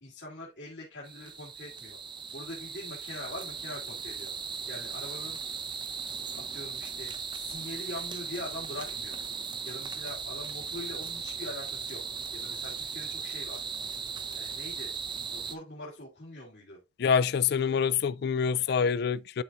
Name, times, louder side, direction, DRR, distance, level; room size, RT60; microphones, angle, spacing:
voice 1, 0.0-2.0 2.3-4.3 4.7-5.4 6.5-9.2 9.6-12.0 12.3-13.6 14.3-14.9 15.3-16.8 17.6-17.8 18.7-18.8, left 1 dB, 80° left, 2.6 m, -43 dB
sound 1, 1.1-15.6, right 6 dB, 25° right, 0.6 m, -38 dB
voice 2, 17.0-19.4, left 6 dB, 60° left, 0.3 m, -26 dB
12.0 x 4.2 x 2.5 m
head